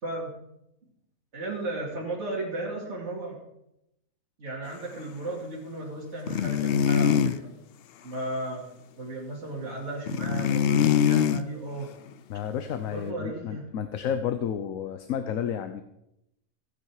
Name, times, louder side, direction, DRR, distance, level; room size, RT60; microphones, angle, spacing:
voice 1, 0.0-0.3 1.3-3.4 4.4-7.5 8.0-8.6 9.0-11.9 12.9-13.7, right 2 dB, 55° right, -4 dB, 2.8 m, -35 dB
sound 1, 6.3-7.4 10.1-11.4, left 8 dB, 60° left, 0.7 m, -23 dB
voice 2, 12.3-15.8, left 8 dB, 80° left, 9 dB, 1.2 m, -31 dB
15.5 x 9.6 x 4.8 m, 0.82 s
omnidirectional pair, 1.4 m